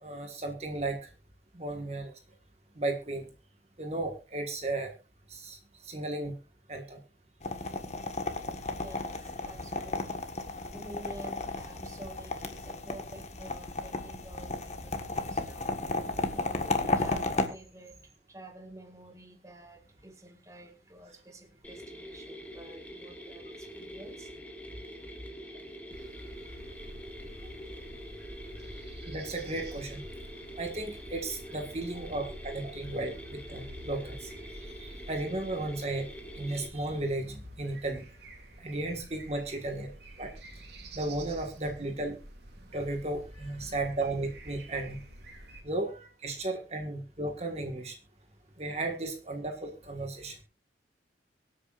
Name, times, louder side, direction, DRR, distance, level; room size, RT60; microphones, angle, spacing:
voice 1, 0.0-1.0 1.5-2.1 2.8-3.3 3.8-4.9 5.3-6.3 6.7-7.0 29.1-30.1 30.6-36.1 36.4-38.0 38.6-39.9 40.2-40.3 40.9-42.2 42.7-45.0 45.6-48.0 48.6-50.4, right 2 dB, 35° right, 1.6 m, -35 dB
sound 1, 7.4-17.5, left 2 dB, 40° left, 1.5 m, -34 dB
voice 2, 8.8-10.3 10.7-15.7 16.3-18.0 18.3-24.3 25.6-25.9 38.5-38.7 40.5-40.9 42.5-42.7 43.6-43.8 44.7-44.8, right 1 dB, 15° right, 1.8 m, -49 dB
Mechanisms, 21.6-36.7, equal, 10° left, 1.9 m, -46 dB
sound 2, 25.9-45.6, right 1 dB, 65° right, 2.8 m, -48 dB
24.5 x 8.3 x 2.5 m
head